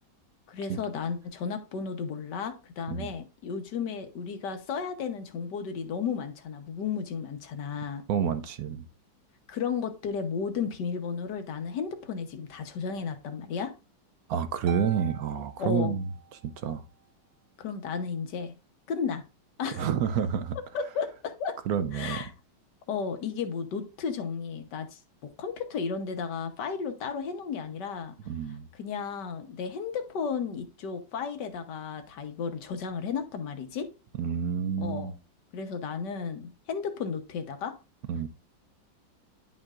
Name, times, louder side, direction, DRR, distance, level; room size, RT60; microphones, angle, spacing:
voice 1, 0.5-8.0 9.5-13.7 15.6-16.0 17.6-18.5 18.9-19.2 19.6-19.9 20.7-21.6 21.9-22.3 22.9-28.1 28.7-33.9 34.8-35.1 35.5-37.7, left 6 dB, 65° left, 1.6 m, -33 dB
voice 2, 8.1-8.9 14.3-16.1 16.4-16.8 19.7-20.6 21.7-22.2 28.3-28.7 34.2-35.1 38.1-38.3, right 8 dB, 65° right, 0.9 m, -29 dB
Harp, 14.7-16.5, right 9 dB, 85° right, 1.6 m, -44 dB
10.5 x 5.4 x 2.5 m
omnidirectional pair, 2.1 m